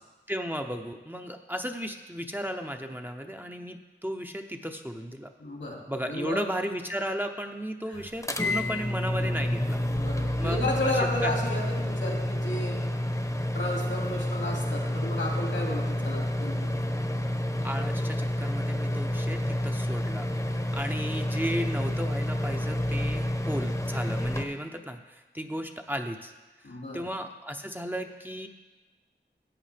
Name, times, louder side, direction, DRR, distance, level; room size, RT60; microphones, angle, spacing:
voice 1, 0.3-5.3 5.9-9.8 10.4-11.4 17.6-26.3 26.6-28.5, equal, 10° right, 4 dB, 0.7 m, -35 dB
voice 2, 5.4-5.8 6.1-6.4 7.9-8.0 9.9-12.8 13.5-17.0 26.6-27.0, left 1 dB, 85° left, -2 dB, 2.4 m, -33 dB
sound 1, 8.2-24.4, left 1 dB, 15° left, 0.9 m, -29 dB
14.5 x 8.5 x 3.4 m, 1.2 s
wide cardioid pair, 45°, 20 cm